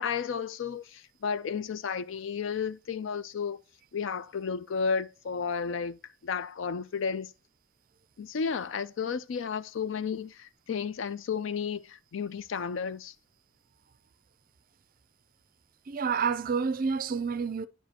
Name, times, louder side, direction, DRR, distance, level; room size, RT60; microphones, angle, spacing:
voice 1, 0.0-3.6 3.9-6.0 6.2-7.3 8.2-13.1, left 6 dB, 65° left, 0.4 m, -32 dB
voice 2, 15.9-17.7, right 5 dB, 40° right, 0.4 m, -29 dB
9.8 x 5.1 x 2.8 m
head